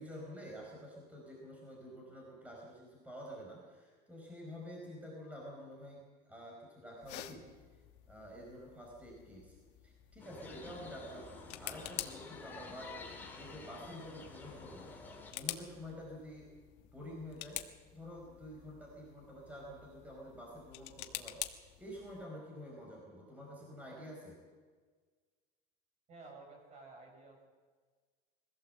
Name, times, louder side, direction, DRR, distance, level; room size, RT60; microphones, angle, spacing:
voice 1, 0.0-7.5 8.1-9.6 9.8-11.3 11.6-14.9 15.3-16.5 16.9-17.6 17.9-24.4, equal, 5° right, -2 dB, 4.7 m, -49 dB
sound 1, 7.0-22.2, left 15 dB, 60° left, 1.5 m, -49 dB
sound 2, 10.2-15.3, left 4 dB, 10° left, 2.9 m, -50 dB
voice 2, 26.1-27.5, right 3 dB, 35° right, 2 dB, 6.2 m, -53 dB
22.0 x 16.5 x 7.8 m, 1.5 s
cardioid pair, 160°, 20 cm